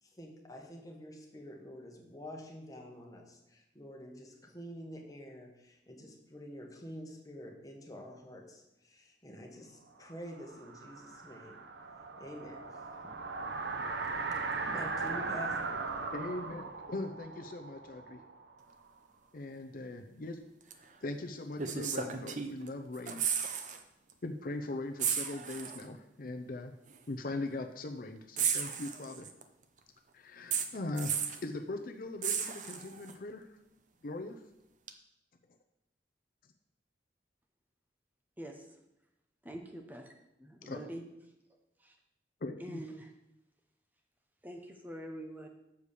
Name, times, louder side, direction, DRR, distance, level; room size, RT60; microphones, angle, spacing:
voice 1, 0.0-11.6 12.2-13.1 14.3-15.8, equal, 20° left, 0 dB, 1.4 m, -48 dB
sound 1, 10.2-18.9, right 4 dB, 85° right, 0.8 m, -39 dB
voice 2, 16.1-18.2 19.3-20.4 21.0-23.2 24.2-26.7 27.1-29.3 30.1-33.5 34.0-34.4 40.6-40.8 42.4-42.8, left 2 dB, 55° left, 5 dB, 0.6 m, -40 dB
sound 2, 20.7-20.8 21.6-22.7 23.0-23.8 24.1-24.3 25.0-25.9 26.9-27.0 28.4-29.4 30.5-31.5 32.2-33.1 34.9-35.0, right 7 dB, 45° right, 0.7 m, -34 dB
voice 3, 39.4-40.1 40.4-41.0 41.8-41.9 42.6-43.1 44.4-45.5, right 1 dB, 10° right, 2 dB, 0.7 m, -44 dB
7.1 x 4.9 x 6.7 m, 0.86 s
head